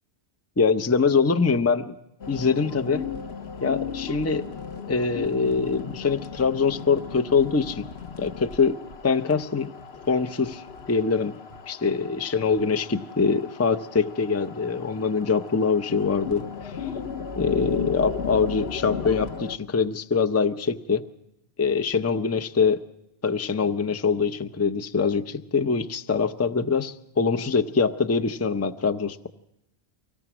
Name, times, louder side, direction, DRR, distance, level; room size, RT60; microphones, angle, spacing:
voice 1, 0.6-1.9 2.3-3.0 3.6-4.5 4.9-7.9 8.2-8.8 9.0-9.7 10.1-11.4 11.7-16.5 16.8-16.9 17.3-21.0 21.6-22.8 23.2-29.3, left 5 dB, 20° left, 9 dB, 0.5 m, -24 dB
sound 1, 2.2-19.6, left 6 dB, 75° left, 1.2 m, -36 dB
24.5 x 17.5 x 6.1 m, 0.85 s
omnidirectional pair, 1.1 m